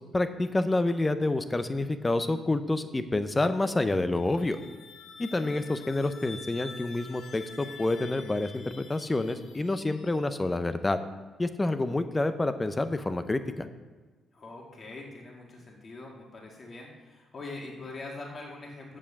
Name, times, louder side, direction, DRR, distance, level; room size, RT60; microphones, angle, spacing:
voice 1, 0.1-4.6 5.2-11.0 11.4-13.7, left 2 dB, 20° left, 10 dB, 0.7 m, -28 dB
sound 1, 4.1-10.7, left 4 dB, 65° left, 1.2 m, -48 dB
voice 2, 5.3-5.6 14.3-19.0, left 2 dB, 40° left, -2 dB, 2.0 m, -43 dB
7.5 x 7.4 x 7.0 m, 1.3 s
cardioid pair, 90°, 0 cm